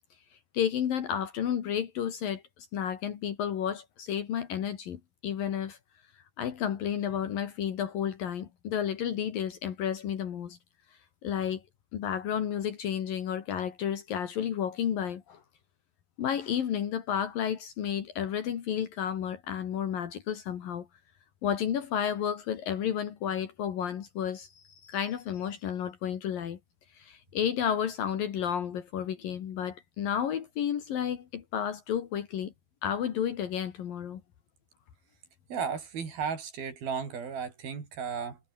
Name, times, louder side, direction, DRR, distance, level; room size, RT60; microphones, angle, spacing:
voice 1, 0.5-2.4 2.7-5.8 6.4-10.6 11.2-11.6 11.9-15.4 16.2-20.9 21.4-26.6 27.0-32.5 32.8-34.2, left 9 dB, 70° left, 3.7 m, -31 dB
voice 2, 35.5-38.4, right 6 dB, 75° right, 6.7 m, -34 dB
omnidirectional pair, 4.3 m